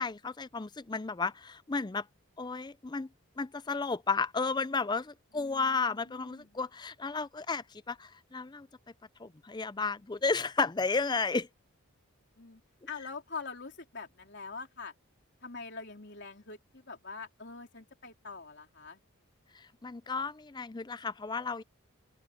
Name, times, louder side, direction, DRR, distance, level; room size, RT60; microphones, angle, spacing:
voice 1, 0.0-2.1 2.4-3.1 3.4-8.7 9.2-11.5 19.5-21.6, left 4 dB, 20° left, 0.4 m, -33 dB
voice 2, 5.3-6.5 12.4-12.6 12.9-14.9 15.4-19.0, left 4 dB, 50° left, 3.7 m, -44 dB
open air
head